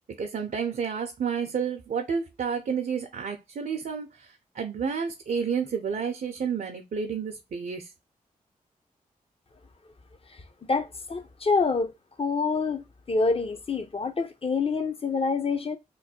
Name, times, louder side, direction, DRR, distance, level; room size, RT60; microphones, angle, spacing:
voice 1, 0.2-7.9, right 6 dB, 65° right, 0.6 m, -30 dB
voice 2, 10.7-11.9 12.2-15.8, left 4 dB, 40° left, 0.8 m, -27 dB
3.1 x 2.2 x 4.2 m
supercardioid pair, 40°, 16 cm